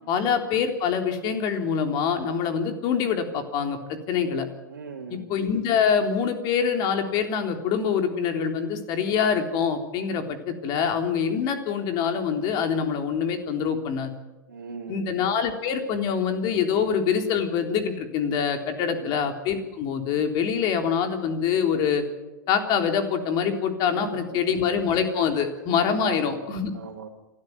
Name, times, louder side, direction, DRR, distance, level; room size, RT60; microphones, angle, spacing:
voice 1, 0.1-3.8 4.1-4.5 5.1-14.1 14.9-22.0 22.5-26.7, left 7 dB, 40° left, 5 dB, 3.7 m, -25 dB
voice 2, 4.7-5.3 14.5-15.0 18.9-19.2 23.9-24.2 24.5-24.6 26.0-26.4 26.7-27.1, right 5 dB, 85° right, -4 dB, 3.1 m, -38 dB
28.5 x 13.0 x 9.6 m, 1.1 s
hypercardioid pair, 110°, 10 cm